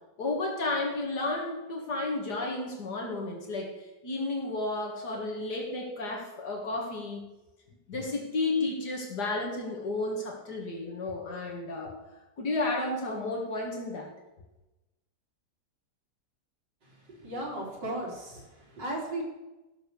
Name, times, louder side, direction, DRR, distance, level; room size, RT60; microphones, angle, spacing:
voice 1, 0.2-7.2 7.9-11.9 12.4-14.1, left 2 dB, 70° left, 0 dB, 2.3 m, -32 dB
voice 2, 17.1-18.5 18.7-19.2, right 1 dB, 85° right, -2 dB, 3.9 m, -35 dB
14.5 x 6.6 x 6.8 m, 1.0 s
omnidirectional pair, 1.8 m